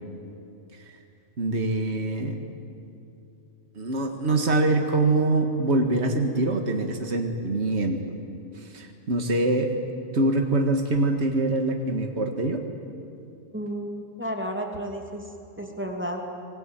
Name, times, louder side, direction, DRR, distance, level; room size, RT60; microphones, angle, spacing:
voice 1, 1.4-2.4 3.8-8.0 8.7-9.7 10.1-12.6, right 2 dB, 65° right, 4 dB, 2.1 m, -24 dB
voice 2, 13.5-15.3 15.6-16.2, equal, 10° right, 1 dB, 2.8 m, -32 dB
25.0 x 20.5 x 9.0 m, 2.7 s
omnidirectional pair, 1.2 m